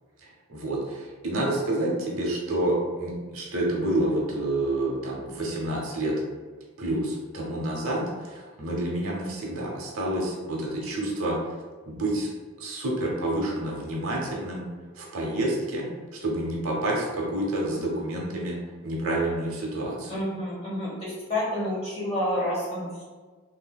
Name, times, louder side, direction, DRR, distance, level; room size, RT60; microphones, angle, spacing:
voice 1, 0.5-6.1 6.8-11.4 11.8-12.3 12.6-14.6 15.0-15.9 16.2-18.6 18.8-20.2, right 1 dB, 75° right, -2 dB, 0.7 m, -28 dB
voice 2, 20.1-23.0, left 1 dB, 25° left, -6 dB, 0.9 m, -29 dB
3.3 x 2.6 x 2.3 m, 1.4 s
head